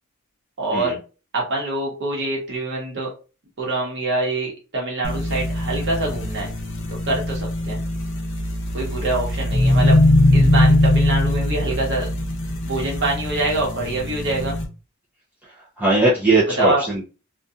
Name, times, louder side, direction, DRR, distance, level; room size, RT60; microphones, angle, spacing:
voice 1, 0.6-1.0 1.3-3.1 3.6-6.5 7.0-7.8 8.7-10.0 10.3-12.1 12.6-14.6 16.6-16.8, right 2 dB, 55° right, -1 dB, 1.1 m, -25 dB
sound 1, 5.0-14.6, left 1 dB, 60° left, 0.7 m, -21 dB
voice 2, 15.8-17.0, right 2 dB, 10° right, -8 dB, 0.7 m, -19 dB
2.7 x 2.4 x 2.4 m, 0.34 s
head